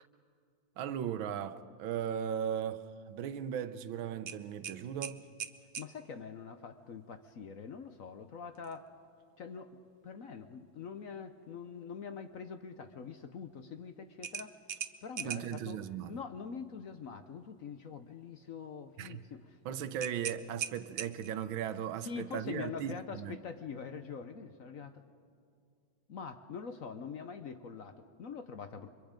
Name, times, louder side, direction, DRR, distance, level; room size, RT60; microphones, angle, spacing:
voice 1, 0.8-5.2 15.2-16.2 19.0-19.2 19.6-23.4, right 9 dB, 85° right, 1.6 m, -37 dB
sound 1, 4.3-5.9 8.5-8.8 9.2-9.3 14.2-15.6 20.0-21.4, right 8 dB, 55° right, 0.7 m, -40 dB
voice 2, 5.8-8.9 9.4-14.6 15.0-15.8 16.1-19.6 22.0-25.0 26.1-28.9, left 6 dB, 55° left, 1.0 m, -44 dB
30.0 x 24.5 x 5.1 m
omnidirectional pair, 2.1 m